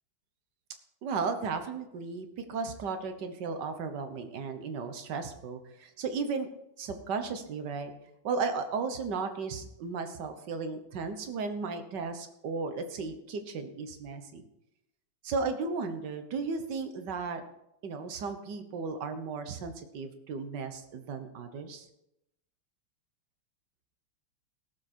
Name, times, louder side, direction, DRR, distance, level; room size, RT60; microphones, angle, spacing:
voice 1, 1.0-6.5 6.8-7.9 8.2-14.4 15.2-17.4 17.8-21.9, right 4 dB, 55° right, 8 dB, 1.6 m, -35 dB
17.0 x 7.3 x 4.5 m, 0.84 s
omnidirectional pair, 2.4 m